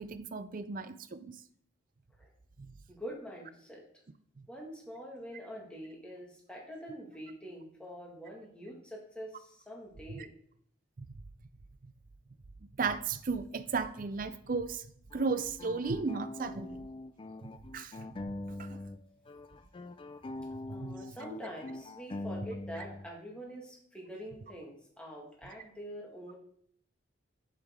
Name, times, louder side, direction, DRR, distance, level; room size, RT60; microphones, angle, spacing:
voice 1, 0.0-1.3 2.6-2.7 10.2-10.3 11.0-11.1 12.8-14.9 15.1-16.9 17.7-18.1 18.6-18.8 20.8-20.9, right 4 dB, 45° right, 12 dB, 0.5 m, -35 dB
voice 2, 2.9-3.8 4.5-10.3 20.7-26.4, equal, 5° left, -2 dB, 1.7 m, -45 dB
sound 1, 15.1-19.0 19.3-23.1, left 2 dB, 25° left, 0.3 m, -43 dB
8.2 x 8.2 x 3.6 m, 0.65 s
head